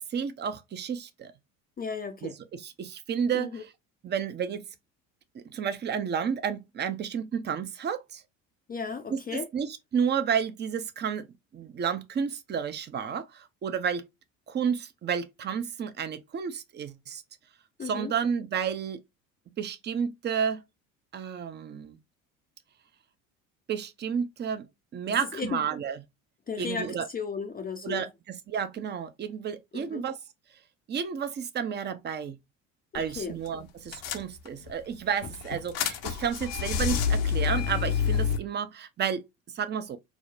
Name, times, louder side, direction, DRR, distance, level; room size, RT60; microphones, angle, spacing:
voice 1, 0.0-1.3 2.2-3.7 4.0-4.6 5.3-8.2 9.1-11.3 11.5-14.1 14.5-17.2 17.8-19.0 19.6-20.6 21.1-22.0 23.7-24.7 24.9-26.0 26.6-27.1 27.8-30.2 30.9-32.4 32.9-39.3 39.5-40.0, right 7 dB, 25° right, 0.6 m, -31 dB
voice 2, 1.8-2.3 3.3-3.6 8.7-9.5 17.8-18.1 25.3-25.6 26.5-28.1 29.7-30.0 33.2-33.4, left 5 dB, 20° left, 0.5 m, -34 dB
sound 1, 33.0-33.2 33.5-33.6 33.9-34.7 35.2-38.4, left 7 dB, 65° left, 0.8 m, -28 dB
4.8 x 2.1 x 2.5 m
hypercardioid pair, 65°, 42 cm